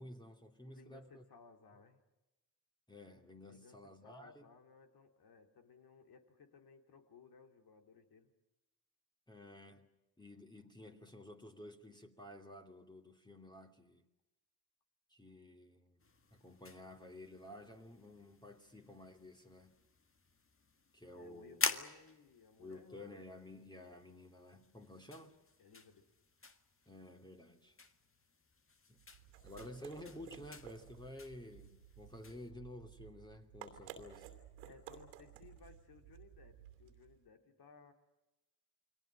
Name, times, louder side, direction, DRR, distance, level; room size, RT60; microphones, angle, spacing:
voice 1, 0.0-1.2 2.9-4.5 9.3-14.0 15.1-16.0 16.3-19.8 20.9-21.6 22.6-25.3 26.9-27.8 28.9-29.0 29.4-34.3, left 1 dB, 10° left, 2.7 m, -53 dB
voice 2, 0.6-2.0 3.5-8.3 21.1-23.2 25.6-26.1 34.6-37.9, left 5 dB, 55° left, 3.3 m, -61 dB
sound 1, 16.0-32.5, left 4 dB, 30° left, 1.8 m, -47 dB
sound 2, 29.0-37.2, right 10 dB, 85° right, 2.7 m, -55 dB
29.5 x 22.0 x 6.4 m
hypercardioid pair, 45°, 45 cm